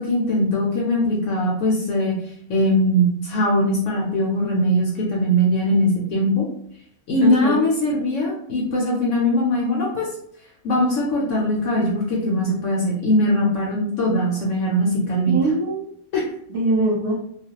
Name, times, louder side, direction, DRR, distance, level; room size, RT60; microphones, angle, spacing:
voice 1, 0.0-2.1 2.5-6.5 7.1-10.1 10.6-15.3 16.1-16.2, equal, 65° left, -2 dB, 0.8 m, -21 dB
voice 2, 7.2-7.6 7.9-8.0 15.3-15.9 16.5-17.1, right 2 dB, 55° right, -3 dB, 0.8 m, -22 dB
2.4 x 2.1 x 2.8 m, 0.67 s
omnidirectional pair, 1.5 m